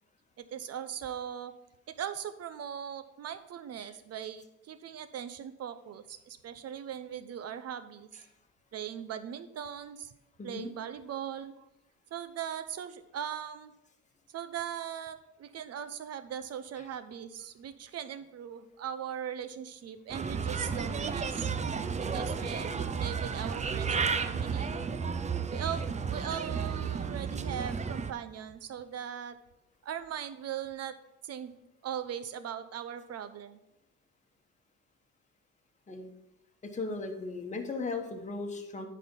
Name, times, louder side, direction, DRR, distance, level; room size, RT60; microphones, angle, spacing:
voice 1, 0.4-1.5 1.9-8.1 8.7-10.1 10.4-11.7 12.1-13.7 14.3-21.5 22.1-24.8 25.5-29.4 29.8-30.9 31.2-31.5 31.8-33.6, right 9 dB, 55° right, 12 dB, 0.8 m, -39 dB
voice 2, 10.4-10.7 35.9-36.1 36.6-38.9, left 3 dB, 25° left, 3 dB, 1.2 m, -37 dB
Bird, 20.1-28.1, right 5 dB, 25° right, 0.5 m, -32 dB
9.8 x 4.3 x 5.3 m, 0.89 s
cardioid pair, 100°, 30 cm